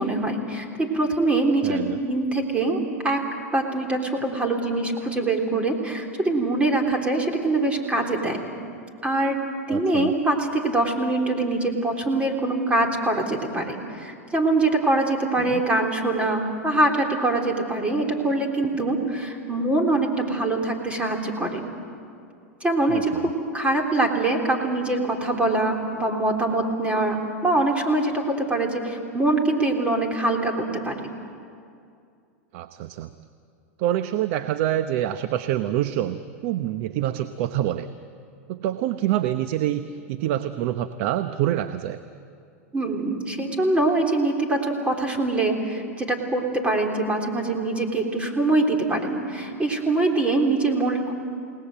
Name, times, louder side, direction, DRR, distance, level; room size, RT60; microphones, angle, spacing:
voice 1, 0.0-3.2 3.5-8.4 9.0-9.4 9.7-21.7 22.6-31.1 42.7-51.1, right 2 dB, 15° right, 2 dB, 3.6 m, -24 dB
voice 2, 1.6-2.0 9.7-10.1 15.4-15.6 22.9-23.2 32.5-33.1 33.8-37.9 38.5-42.0, right 12 dB, 60° right, 10 dB, 0.9 m, -26 dB
29.0 x 19.0 x 7.9 m, 2.4 s
hypercardioid pair, 110°, 8 cm